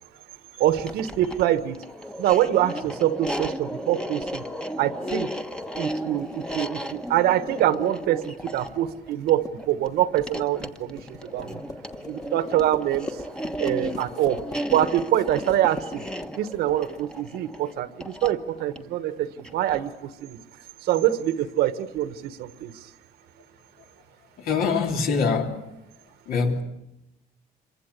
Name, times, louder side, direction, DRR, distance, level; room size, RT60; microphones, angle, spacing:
voice 1, 0.6-1.8 2.2-4.4 4.8-5.3 5.7-11.6 12.1-13.2 13.6-14.4 14.7-16.0 16.4-20.4 20.8-22.7, right 12 dB, 80° right, 12 dB, 1.5 m, -25 dB
sound 1, 0.7-20.0, equal, 5° left, 1.2 m, -35 dB
sound 2, 5.6-17.2, left 3 dB, 20° left, 1.7 m, -41 dB
voice 2, 24.4-25.7 26.3-26.6, left 5 dB, 65° left, 3 dB, 3.6 m, -24 dB
26.5 x 24.0 x 8.4 m, 0.91 s
cardioid pair, 140°, 16 cm